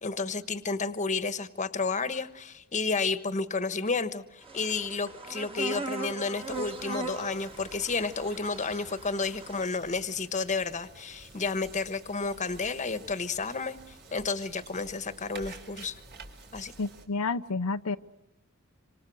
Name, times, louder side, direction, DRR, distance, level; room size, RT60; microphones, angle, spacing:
voice 1, 0.0-13.8 14.1-16.0 16.5-16.7, left 4 dB, 35° left, 12 dB, 1.3 m, -31 dB
sound 1, 4.4-9.7, right 3 dB, 25° right, 2.2 m, -40 dB
sound 2, 6.4-17.1, right 3 dB, 50° right, 4.0 m, -51 dB
voice 2, 16.8-18.0, left 3 dB, 85° left, 9 dB, 0.8 m, -30 dB
27.5 x 26.0 x 6.3 m, 0.95 s
head